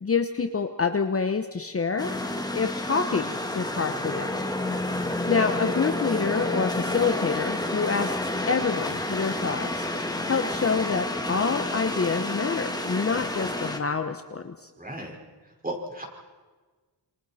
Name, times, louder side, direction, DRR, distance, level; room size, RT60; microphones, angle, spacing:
voice 1, 0.0-2.1 2.5-4.3 5.3-8.2 8.5-9.9 10.3-14.6, left 5 dB, 35° left, 7 dB, 1.0 m, -27 dB
sound 1, 2.0-13.8, left 1 dB, 10° left, 1.9 m, -30 dB
voice 2, 14.8-15.1 15.4-16.0, right 1 dB, 20° right, 1 dB, 4.7 m, -35 dB
27.5 x 25.5 x 4.3 m, 1.3 s
wide cardioid pair, 110°, 42 cm